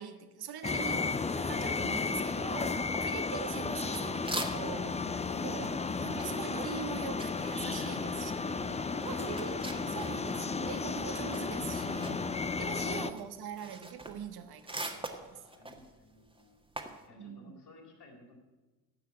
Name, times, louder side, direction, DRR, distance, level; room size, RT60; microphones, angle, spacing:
voice 1, 0.0-5.1 5.4-5.7 6.0-8.7 9.0-15.4 17.2-17.6, right 8 dB, 50° right, 9 dB, 1.3 m, -43 dB
sound 1, 0.6-13.1, left 4 dB, 15° left, 0.6 m, -33 dB
sound 2, 2.9-4.9 5.2-10.5 10.8-17.0, right 2 dB, 10° right, 1.7 m, -43 dB
voice 2, 7.7-10.4 15.3-16.6 17.1-18.4, left 2 dB, 55° left, -1 dB, 4.0 m, -54 dB
14.5 x 5.7 x 8.6 m, 1.2 s
hypercardioid pair, 50°, 47 cm